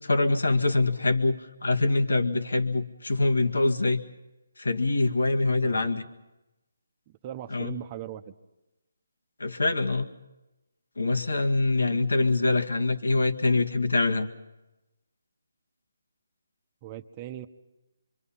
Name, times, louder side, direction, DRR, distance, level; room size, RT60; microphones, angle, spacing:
voice 1, 0.0-4.0 4.6-6.0 7.5-7.8 9.4-10.1 11.0-14.3, left 2 dB, 80° left, 6 dB, 1.9 m, -24 dB
voice 2, 5.6-6.1 7.2-8.3 16.8-17.5, right 12 dB, 25° right, 9 dB, 1.2 m, -39 dB
25.0 x 25.0 x 5.7 m, 1.0 s
figure-of-eight pair, 150°, 0 cm